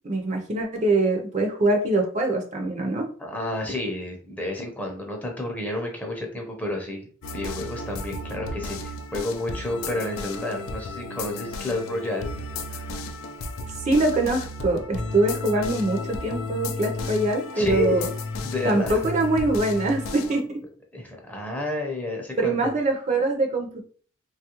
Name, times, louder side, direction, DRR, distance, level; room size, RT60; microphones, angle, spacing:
voice 1, 0.0-3.0 13.8-18.1 18.6-20.6 22.4-23.8, right 2 dB, 35° right, 3 dB, 0.5 m, -23 dB
voice 2, 3.2-7.1 7.3-12.3 12.7-12.8 17.6-18.1 18.4-19.0 20.9-22.7, left 2 dB, 10° left, 1 dB, 0.6 m, -30 dB
sound 1, 7.2-20.4, left 2 dB, 85° left, 0.4 m, -33 dB
3.1 x 2.3 x 2.9 m, 0.43 s
head